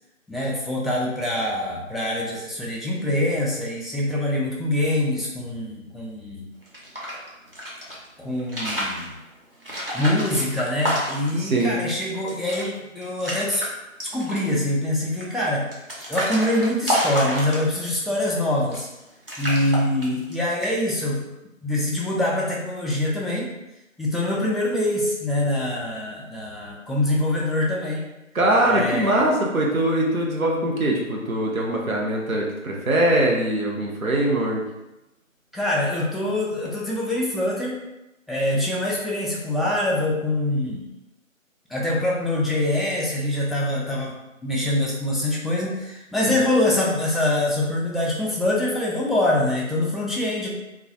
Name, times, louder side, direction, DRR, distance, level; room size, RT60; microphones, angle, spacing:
voice 1, 0.3-6.5 8.2-9.1 9.9-13.6 14.0-15.7 16.1-18.9 19.4-21.2 21.6-23.5 24.0-28.1 28.7-29.3 35.5-37.8 38.3-40.9 41.7-44.1 44.4-50.5, left 1 dB, ahead, -4 dB, 0.3 m, -24 dB
sound 1, 6.6-8.0 8.4-9.1 9.6-11.4 11.8-11.9 12.2-12.7 13.0-13.7 14.0-14.5 15.2-17.9 18.6-19.0 19.3-20.3 20.6-21.0, equal, 45° right, 0.6 m, -28 dB
voice 2, 11.3-11.8 28.3-34.6, right 1 dB, 80° right, -2 dB, 0.7 m, -22 dB
2.2 x 2.0 x 2.7 m, 0.96 s
figure-of-eight pair, 170°, 41 cm